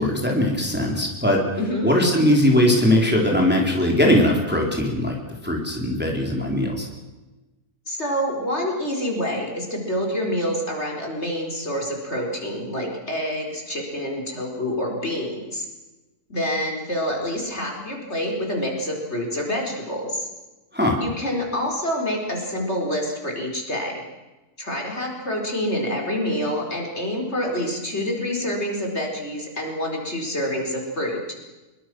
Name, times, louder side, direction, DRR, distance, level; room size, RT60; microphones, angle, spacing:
voice 1, 0.0-1.4 1.8-5.2 5.4-6.9 20.7-21.0, left 1 dB, 5° right, 0 dB, 3.8 m, -20 dB
voice 2, 1.6-1.9 7.9-15.7 16.3-20.3 21.0-23.9 24.6-31.2, equal, 45° left, 0 dB, 4.8 m, -27 dB
25.0 x 23.0 x 6.3 m, 1.1 s
omnidirectional pair, 1.6 m